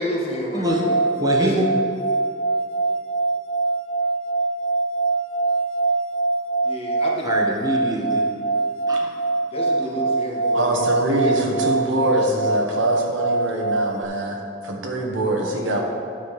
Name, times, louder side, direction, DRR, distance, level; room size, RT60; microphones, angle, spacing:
voice 1, 0.0-1.0 1.4-1.6 6.6-7.3 9.5-10.9 11.2-12.6, left 1 dB, 30° left, -2 dB, 1.4 m, -30 dB
voice 2, 0.5-1.7 7.2-8.2 8.9-9.1, equal, 20° right, 0 dB, 1.1 m, -24 dB
sound 1, 0.6-14.0, right 3 dB, 80° left, 0.8 m, -23 dB
voice 3, 10.5-14.4 14.6-15.8, right 1 dB, 80° right, 1 dB, 1.3 m, -24 dB
10.0 x 6.6 x 4.8 m, 2.6 s
head